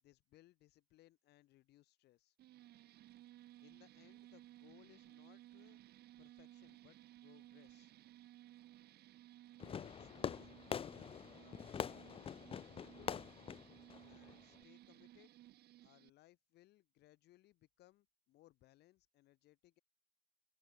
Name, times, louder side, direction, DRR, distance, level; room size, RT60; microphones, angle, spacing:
voice 1, 0.0-2.4 3.6-5.8 6.2-7.9 9.6-13.3 14.0-15.3 15.8-19.8, left 16 dB, 75° left, 4.0 m, -67 dB
sound 1, 2.4-16.1, right 14 dB, 70° right, 3.9 m, -60 dB
Fireworks, 9.6-14.6, left 8 dB, 35° left, 0.5 m, -45 dB
open air
cardioid pair, 110°, 17 cm